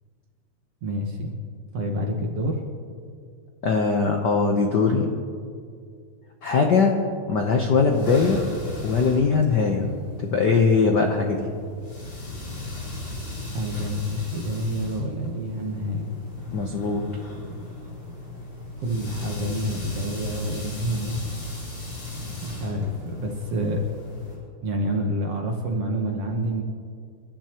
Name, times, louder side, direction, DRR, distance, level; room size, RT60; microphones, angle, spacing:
voice 1, 0.8-1.3 1.7-2.6 13.4-16.1 18.8-21.2 22.4-23.8 24.6-26.6, equal, 60° right, 0 dB, 2.1 m, -28 dB
voice 2, 3.6-5.1 6.4-7.0 7.3-8.4 8.8-9.9 10.2-11.5 16.5-17.0, left 4 dB, 90° left, 2 dB, 0.9 m, -21 dB
sound 1, 7.6-24.4, left 2 dB, 40° left, 5.3 m, -37 dB
29.0 x 12.0 x 3.0 m, 2.2 s
omnidirectional pair, 3.5 m